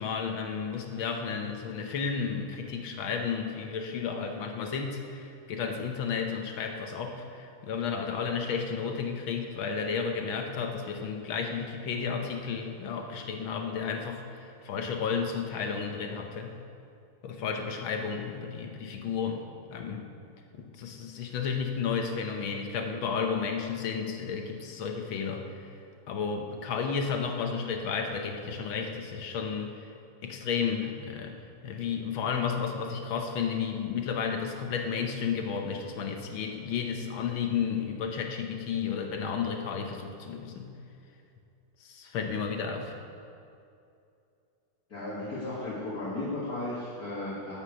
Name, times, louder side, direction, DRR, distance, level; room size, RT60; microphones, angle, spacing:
voice 1, 0.0-16.5 17.2-19.4 19.7-20.0 20.5-25.7 26.1-29.9 30.2-31.3 31.6-40.7 41.8-42.9, left 6 dB, 80° left, 4 dB, 1.7 m, -32 dB
voice 2, 44.9-47.6, left 2 dB, 50° left, -8 dB, 2.4 m, -35 dB
11.5 x 6.6 x 8.2 m, 2.5 s
omnidirectional pair, 2.2 m